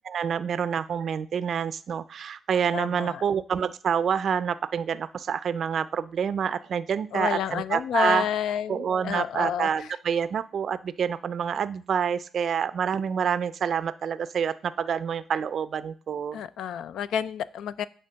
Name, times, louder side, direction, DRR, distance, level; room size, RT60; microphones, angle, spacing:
voice 1, 0.0-8.3 8.7-16.4, right 7 dB, 55° right, 15 dB, 0.4 m, -27 dB
voice 2, 2.7-3.2 7.1-9.7 16.3-17.9, left 8 dB, 75° left, 16 dB, 0.4 m, -29 dB
9.1 x 3.4 x 5.6 m, 0.42 s
cardioid pair, 90°, 0 cm